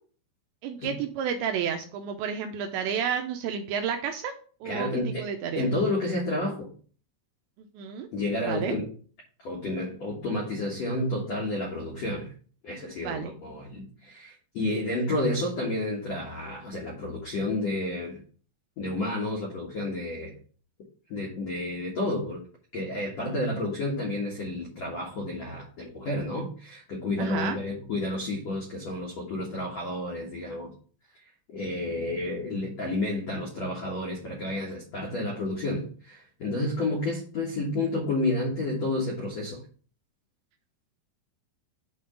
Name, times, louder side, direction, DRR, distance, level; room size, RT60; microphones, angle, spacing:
voice 1, 0.6-4.3 4.6-5.7 7.6-8.1 8.4-8.8 13.0-13.3 27.2-27.6, right 7 dB, 85° right, 5 dB, 2.7 m, -31 dB
voice 2, 4.6-5.2 5.5-6.7 8.1-8.9 9.4-12.3 12.6-18.2 18.8-20.4 21.1-22.4 22.7-30.7 31.5-39.6, left 2 dB, 75° left, -3 dB, 1.5 m, -30 dB
8.5 x 3.8 x 5.1 m, 0.42 s
omnidirectional pair, 5.6 m